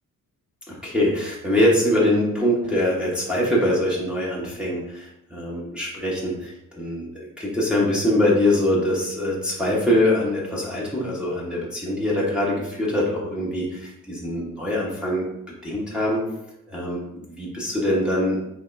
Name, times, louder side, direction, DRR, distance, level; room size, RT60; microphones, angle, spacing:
voice 1, 0.7-15.3 15.6-16.2 16.7-17.0 17.3-18.4, left 1 dB, 5° right, -7 dB, 1.1 m, -23 dB
5.0 x 3.6 x 2.6 m, 0.83 s
cardioid pair, 120°, 30 cm